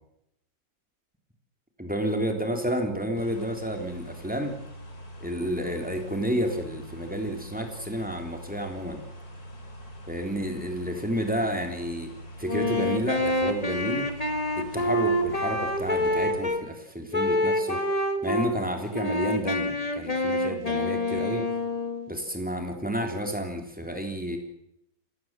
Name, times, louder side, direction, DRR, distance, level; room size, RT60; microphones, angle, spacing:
voice 1, 1.8-4.5 5.2-9.0 10.1-12.1 12.4-14.1 14.6-17.8 18.2-21.5 22.1-24.4, equal, 5° right, 4 dB, 3.3 m, -30 dB
sound 1, 3.2-16.4, equal, 60° left, 4.9 m, -44 dB
Wind instrument woodwind instrument, 12.4-16.6 17.1-18.5 18.9-22.1, left 1 dB, 20° left, 1.9 m, -27 dB
27.0 x 15.5 x 7.5 m, 0.80 s
omnidirectional pair, 1.8 m